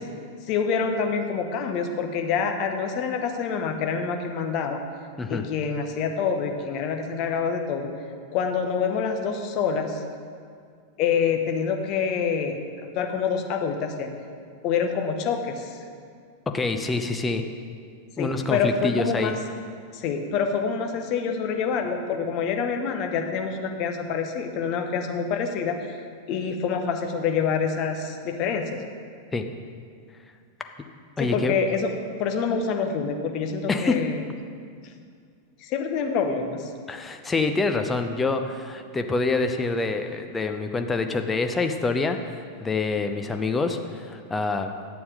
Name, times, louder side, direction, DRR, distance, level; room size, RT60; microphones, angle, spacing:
voice 1, 0.5-4.8 5.3-7.9 8.3-10.0 11.0-12.6 12.9-14.1 14.6-15.8 18.2-19.3 19.9-25.8 26.3-28.8 31.2-31.9 32.2-34.2 35.6-36.7, left 6 dB, 40° left, 5 dB, 1.0 m, -26 dB
voice 2, 16.5-17.4 18.2-19.3 29.3-29.4 31.2-31.5 33.7-34.0 36.9-44.7, left 3 dB, 15° left, 6 dB, 0.7 m, -26 dB
10.5 x 7.1 x 5.0 m, 2.2 s
figure-of-eight pair, 90°, 0 cm